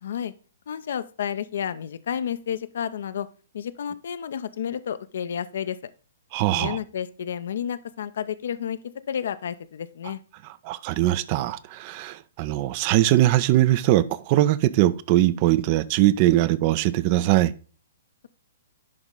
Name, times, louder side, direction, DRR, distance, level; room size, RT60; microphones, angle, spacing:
voice 1, 0.0-0.3 0.7-3.3 3.5-5.8 6.5-10.2, left 8 dB, 55° left, 0.5 m, -31 dB
voice 2, 6.3-6.8 10.6-17.5, right 15 dB, 35° right, 0.4 m, -21 dB
10.5 x 3.9 x 3.6 m
figure-of-eight pair, 120°, 0 cm